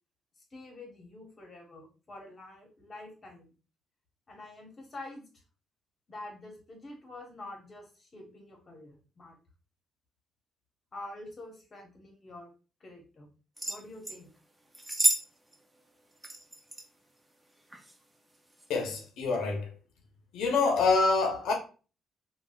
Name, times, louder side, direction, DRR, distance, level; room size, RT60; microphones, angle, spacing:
voice 1, 0.5-3.5 4.3-5.3 6.1-9.4 10.9-12.5 12.8-13.3 13.7-14.3, left 2 dB, 40° left, 1.0 m, -47 dB
sound 1, 13.6-14.2 14.7-15.3 15.5-15.6 16.2-16.9 17.7-18.0 18.5-18.7, right 1 dB, 10° right, 0.5 m, -30 dB
voice 2, 18.7-19.7 20.3-21.5, left 4 dB, 85° left, 0.7 m, -26 dB
3.2 x 2.3 x 2.3 m
cardioid pair, 90°, 0 cm